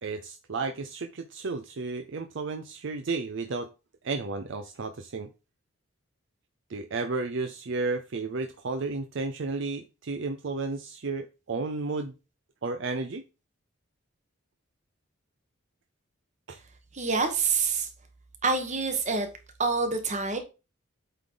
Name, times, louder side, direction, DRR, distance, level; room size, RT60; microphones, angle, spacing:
voice 1, 0.0-3.7 4.0-5.3 6.7-12.1 12.6-13.2 16.5-16.6, right 3 dB, 60° right, 0.5 m, -32 dB
voice 2, 16.9-17.9 18.4-19.3 19.6-20.4, right 4 dB, 35° right, 1.3 m, -26 dB
8.2 x 3.8 x 3.9 m
head